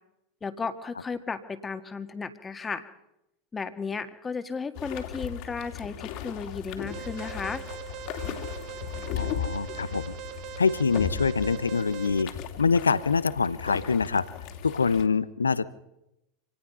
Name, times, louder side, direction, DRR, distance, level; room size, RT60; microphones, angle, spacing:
voice 1, 0.4-2.8 3.5-7.6, left 5 dB, 20° left, 10 dB, 1.8 m, -34 dB
sound 1, 4.8-15.1, left 8 dB, 50° left, 2.7 m, -37 dB
Alarm, 6.9-12.2, right 10 dB, 45° right, 1.8 m, -41 dB
voice 2, 9.2-10.2 10.6-12.3 12.6-14.3 14.6-15.6, left 5 dB, 80° left, 18 dB, 0.9 m, -25 dB
26.5 x 19.0 x 5.6 m, 0.87 s
figure-of-eight pair, 85°, 0 cm